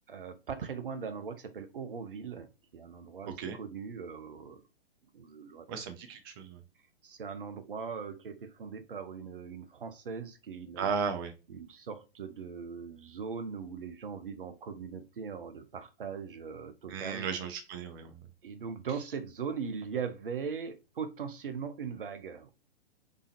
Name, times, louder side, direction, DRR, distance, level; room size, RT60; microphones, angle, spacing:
voice 1, 0.1-4.6 5.1-5.7 6.1-6.2 7.0-11.0 11.5-17.3 18.4-22.5, right 6 dB, 65° right, 0.7 m, -40 dB
voice 2, 3.2-3.6 5.7-6.6 10.8-11.3 16.9-18.1, right 6 dB, 25° right, 0.4 m, -35 dB
3.3 x 3.3 x 2.6 m
figure-of-eight pair, 110°, 29 cm